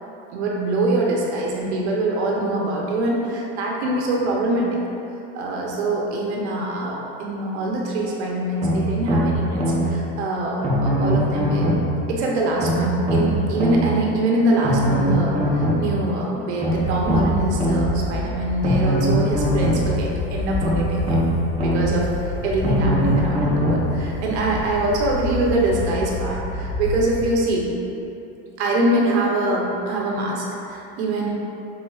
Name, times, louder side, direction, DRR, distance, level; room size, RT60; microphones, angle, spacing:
voice 1, 0.3-4.8 5.3-21.3 21.6-27.7 28.6-31.3, right 2 dB, 80° right, -2 dB, 0.8 m, -24 dB
sound 1, 8.6-9.9 10.6-11.9 12.6-13.9 14.6-15.9 16.6-17.9 18.6-19.9 20.6-21.9 22.6-23.9 24.6-24.7, equal, 20° right, 0.7 m, -21 dB
sound 2, 16.7-27.4, left 2 dB, 65° left, 0.9 m, -29 dB
5.2 x 3.5 x 2.3 m, 2.8 s
supercardioid pair, 150°, 33 cm